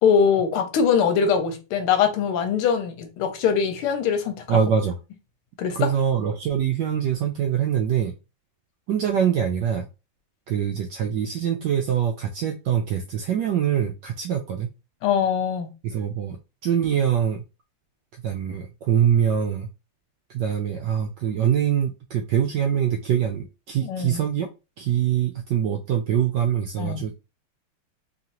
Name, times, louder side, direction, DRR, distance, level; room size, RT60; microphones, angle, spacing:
voice 1, 0.0-4.6 5.6-5.9 15.0-15.7 23.8-24.2 26.8-27.0, left 7 dB, 85° left, 1.7 m, -22 dB
voice 2, 4.5-5.0 5.7-8.1 8.9-9.9 10.5-14.7 15.8-16.4 16.6-17.4 18.2-19.7 20.3-24.5 24.8-27.1, right 9 dB, 80° right, 1.0 m, -24 dB
4.0 x 3.1 x 2.9 m
omnidirectional pair, 2.4 m